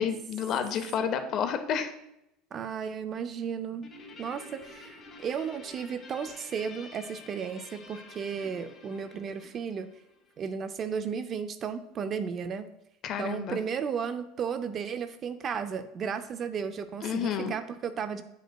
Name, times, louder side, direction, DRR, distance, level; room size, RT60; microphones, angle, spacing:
voice 1, 0.0-1.9 13.0-13.6 17.0-17.5, left 7 dB, 40° left, 9 dB, 0.5 m, -30 dB
voice 2, 2.5-3.9 4.2-9.9 10.4-12.7 13.2-18.2, right 6 dB, 30° right, 11 dB, 0.3 m, -34 dB
Guitar, 3.8-10.5, left 3 dB, 25° left, 0.9 m, -49 dB
8.6 x 5.2 x 2.2 m, 0.84 s
supercardioid pair, 145°, 0 cm